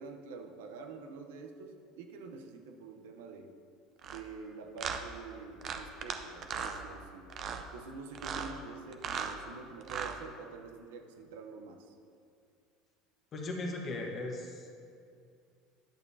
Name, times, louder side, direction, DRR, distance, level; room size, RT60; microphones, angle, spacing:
voice 1, 0.0-3.5 4.0-7.4 7.7-12.0, right 4 dB, 90° right, 5 dB, 0.8 m, -47 dB
sound 1, 4.0-4.2 4.8-5.0 5.6-6.2 6.4-6.8 7.3-7.6 8.1-8.5 8.9-9.3 9.8-10.2, right 7 dB, 45° right, 0.6 m, -37 dB
voice 2, 13.3-14.7, left 2 dB, 35° left, 0 dB, 1.2 m, -37 dB
10.5 x 6.9 x 2.8 m, 2.4 s
supercardioid pair, 115°, 0 cm